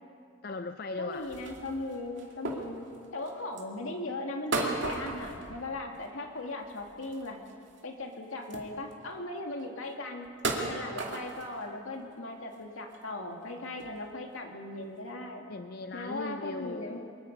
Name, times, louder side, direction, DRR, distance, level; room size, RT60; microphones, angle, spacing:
voice 1, 0.4-1.3 15.5-17.3, left 3 dB, 45° left, 9 dB, 0.4 m, -38 dB
voice 2, 1.0-7.4 7.8-10.3 10.6-15.5 15.9-17.0, left 2 dB, 80° left, 2 dB, 2.3 m, -38 dB
sound 1, 1.1-3.7 4.5-6.2 6.5-7.8 8.1-8.2 8.4-9.1 9.6-9.7 10.3-11.6 12.1-12.2 12.5-13.0 13.4-13.5 13.8-14.0 14.8-14.9, right 2 dB, 60° right, 2.4 m, -36 dB
23.5 x 21.5 x 5.4 m, 2.4 s
head